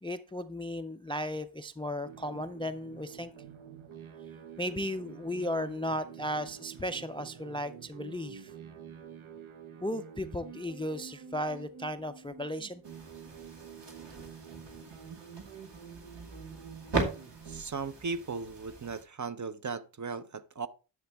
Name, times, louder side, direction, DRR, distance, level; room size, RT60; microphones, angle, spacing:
voice 1, 0.0-3.3 4.6-8.5 9.8-12.8, equal, 10° left, 0.3 m, -35 dB
sound 1, 2.0-17.6, right 7 dB, 75° right, 1.1 m, -48 dB
sound 2, 12.8-19.0, right 3 dB, 55° right, 2.4 m, -39 dB
voice 2, 17.5-20.7, right 4 dB, 40° right, 0.5 m, -37 dB
10.5 x 6.8 x 3.4 m
wide cardioid pair, 120°, 49 cm